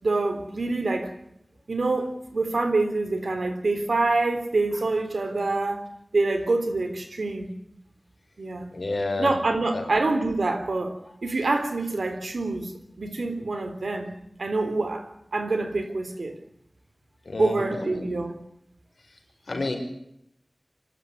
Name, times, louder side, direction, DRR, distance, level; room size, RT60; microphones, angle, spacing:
voice 1, 0.0-1.1 1.7-5.8 6.1-7.5 8.4-8.7 9.2-12.7 13.0-14.1 14.4-16.4 17.4-18.4, right 3 dB, 90° right, 7 dB, 3.5 m, -26 dB
voice 2, 8.7-9.3 9.7-9.8 17.3-18.1 19.5-19.8, left 2 dB, 75° left, 3 dB, 5.6 m, -29 dB
24.5 x 13.0 x 9.8 m, 0.77 s
wide cardioid pair, 50°, 0 cm